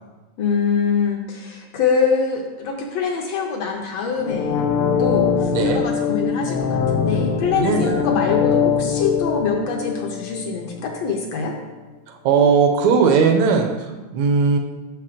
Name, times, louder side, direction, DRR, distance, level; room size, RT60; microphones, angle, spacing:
voice 1, 0.4-4.6 5.0-11.5, left 5 dB, 70° left, 2 dB, 1.7 m, -24 dB
sound 1, 4.2-11.0 11.4-11.5, left 7 dB, 90° left, 2.1 m, -22 dB
voice 2, 5.5-5.8 7.6-8.0 12.1-14.6, right 5 dB, 75° right, 4 dB, 1.9 m, -18 dB
6.8 x 5.8 x 4.9 m, 1.2 s
omnidirectional pair, 3.4 m